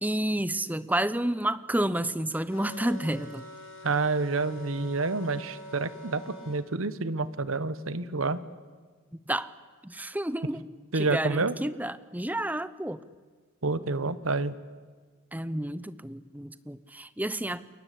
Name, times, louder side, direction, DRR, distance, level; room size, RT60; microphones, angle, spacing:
voice 1, 0.0-3.5 9.1-9.5 9.8-10.7 10.9-13.0 15.3-17.6, right 1 dB, 10° right, 15 dB, 0.8 m, -30 dB
sound 1, 2.5-6.6, equal, 75° left, 5.6 m, -45 dB
voice 2, 3.8-8.4 10.9-11.5 13.6-14.5, right 3 dB, 85° right, 15 dB, 1.3 m, -28 dB
28.5 x 22.5 x 8.5 m, 1.5 s
head